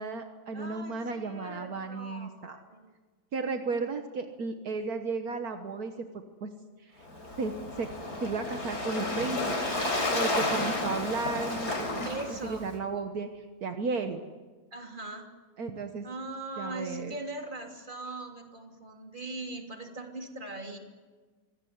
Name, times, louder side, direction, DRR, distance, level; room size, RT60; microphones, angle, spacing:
voice 1, 0.0-2.6 3.3-5.9 6.4-6.5 6.8-7.1 7.4-7.9 8.2-9.7 10.1-11.7 12.3-14.2 15.6-16.1 16.6-17.2, right 4 dB, 70° right, 6 dB, 1.8 m, -34 dB
voice 2, 0.5-2.9 12.0-12.7 14.7-15.3 16.0-20.8, right 2 dB, 30° right, 2 dB, 3.2 m, -40 dB
Waves surf, 7.0-12.7, left 2 dB, 90° left, 5.0 m, -31 dB
25.0 x 17.5 x 9.5 m, 1.4 s
omnidirectional pair, 1.7 m